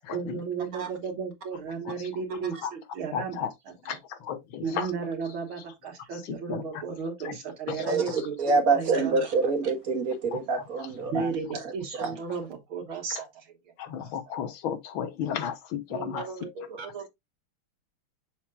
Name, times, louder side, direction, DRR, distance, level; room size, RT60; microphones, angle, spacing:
voice 1, 0.1-4.0 4.6-9.2 9.4-9.5 11.1-13.5 15.9-17.1, right 5 dB, 75° right, 2.2 m, -34 dB
voice 2, 3.1-3.5 3.9-4.0 4.3-4.8 6.5-6.6 10.3-10.4 13.9-16.2, left 8 dB, 75° left, 1.7 m, -32 dB
voice 3, 7.9-11.3 12.0-12.1 16.8-16.9, right 4 dB, 45° right, 1.9 m, -26 dB
6.5 x 6.2 x 2.4 m
omnidirectional pair, 2.3 m